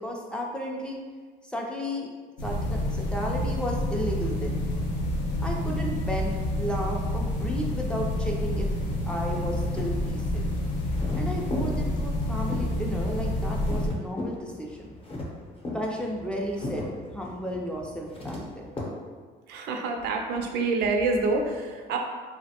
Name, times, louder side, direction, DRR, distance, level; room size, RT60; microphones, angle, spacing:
voice 1, 0.0-1.0 1.5-2.1 2.4-4.6 5.4-8.7 9.1-10.5 11.1-14.9 15.7-16.9 17.1-18.6, equal, 5° left, -1 dB, 0.4 m, -33 dB
sound 1, 2.4-13.9, left 1 dB, 85° left, 0.6 m, -28 dB
sound 2, 8.4-18.8, left 1 dB, 35° left, 0.7 m, -39 dB
voice 2, 19.5-22.0, right 3 dB, 75° right, 3 dB, 0.4 m, -27 dB
3.2 x 2.0 x 2.8 m, 1.5 s
cardioid pair, 110°, 17 cm